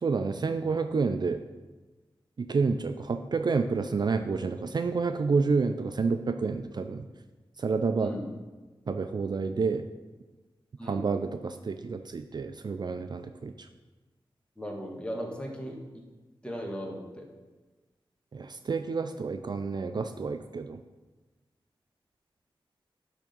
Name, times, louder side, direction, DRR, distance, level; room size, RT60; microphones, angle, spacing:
voice 1, 0.0-1.4 2.4-7.0 7.6-8.1 8.9-9.9 10.8-13.5 18.3-20.8, right 4 dB, 50° right, 8 dB, 0.4 m, -29 dB
voice 2, 8.0-8.3 10.8-11.1 14.6-15.8 16.4-17.3, equal, 10° left, 0 dB, 1.6 m, -37 dB
10.0 x 3.6 x 5.4 m, 1.2 s
cardioid pair, 65°, 9 cm